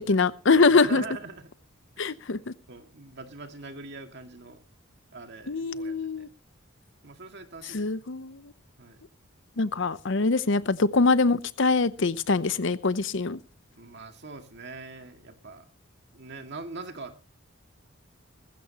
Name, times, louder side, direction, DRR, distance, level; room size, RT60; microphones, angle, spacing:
voice 1, 0.0-1.0 2.0-2.5 5.5-6.3 7.7-8.5 9.6-13.4, left 3 dB, 65° left, 15 dB, 0.8 m, -24 dB
voice 2, 0.7-1.5 2.0-2.2 2.7-4.6 5.1-6.3 7.0-7.8 8.8-9.0 10.5-10.7 13.8-15.7 16.1-17.2, right 3 dB, 55° right, 6 dB, 2.1 m, -42 dB
19.5 x 15.5 x 3.0 m, 0.32 s
head